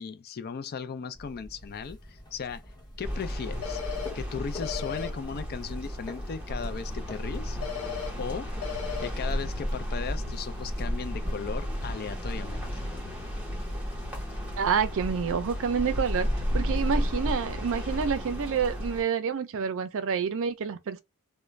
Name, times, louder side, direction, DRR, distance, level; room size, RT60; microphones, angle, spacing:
voice 1, 0.0-2.6 3.0-3.8 4.1-7.6 8.2-8.5 9.0-12.8, left 6 dB, 45° left, 0.4 m, -37 dB
sound 1, 1.1-15.2, left 1 dB, 20° left, 0.8 m, -47 dB
sound 2, 3.0-19.0, equal, 5° right, 1.2 m, -33 dB
sound 3, 3.6-4.1 4.6-5.1 7.6-8.1 8.6-9.1, left 8 dB, 70° left, 0.8 m, -35 dB
voice 2, 14.6-21.0, right 6 dB, 60° right, 0.4 m, -28 dB
2.4 x 2.1 x 3.1 m
head